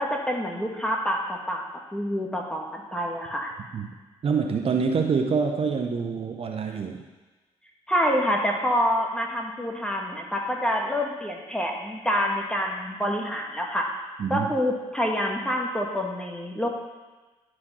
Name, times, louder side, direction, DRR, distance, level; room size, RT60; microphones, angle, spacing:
voice 1, 0.0-1.6 1.9-3.5 7.9-13.9 14.3-16.7, equal, 5° left, 0 dB, 1.7 m, -27 dB
voice 2, 4.2-7.0 14.2-14.5, right 5 dB, 55° right, 4 dB, 0.8 m, -26 dB
11.0 x 4.9 x 4.2 m, 1.2 s
supercardioid pair, 65°, 12 cm